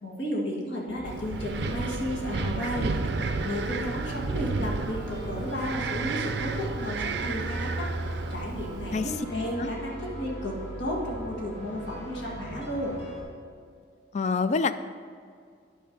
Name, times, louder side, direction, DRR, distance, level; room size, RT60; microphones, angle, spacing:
voice 1, 0.0-3.1 3.4-8.0 8.3-13.0, left 1 dB, 70° left, -2 dB, 1.8 m, -33 dB
sound 1, 0.9-13.2, right 1 dB, 85° left, 2.5 m, -39 dB
Wind, 1.1-9.2, right 4 dB, 60° right, 0.5 m, -32 dB
voice 2, 14.1-14.7, left 4 dB, 35° left, 12 dB, 0.3 m, -26 dB
9.3 x 6.5 x 5.2 m, 2.2 s
head